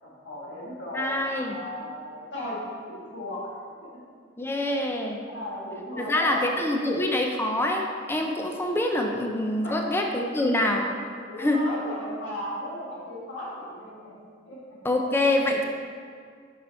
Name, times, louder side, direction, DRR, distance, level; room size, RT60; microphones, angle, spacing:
voice 1, 0.0-2.6 2.9-3.5 3.8-4.0 4.6-7.1 9.6-9.9 10.3-10.4 11.3-14.6, left 1 dB, 75° left, -6 dB, 1.7 m, -37 dB
voice 2, 0.9-1.6 4.4-5.2 6.0-10.9 11.4-11.6 14.8-15.6, left 1 dB, 10° left, 2 dB, 0.4 m, -25 dB
5.6 x 5.5 x 4.1 m, 2.1 s
head